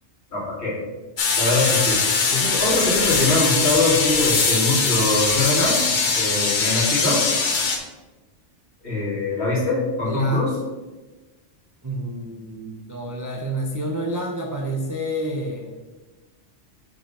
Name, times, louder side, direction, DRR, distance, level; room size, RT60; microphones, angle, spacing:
voice 1, 0.3-0.8 1.4-2.0 2.3-5.8 6.1-7.2 8.8-10.5, left 2 dB, 65° left, -5 dB, 2.2 m, -23 dB
sound 1, 1.2-7.8, left 4 dB, 45° left, 0.9 m, -21 dB
voice 2, 10.1-10.4 11.8-15.8, right 1 dB, 20° right, 0 dB, 0.5 m, -28 dB
5.7 x 5.4 x 4.2 m, 1.2 s
omnidirectional pair, 1.2 m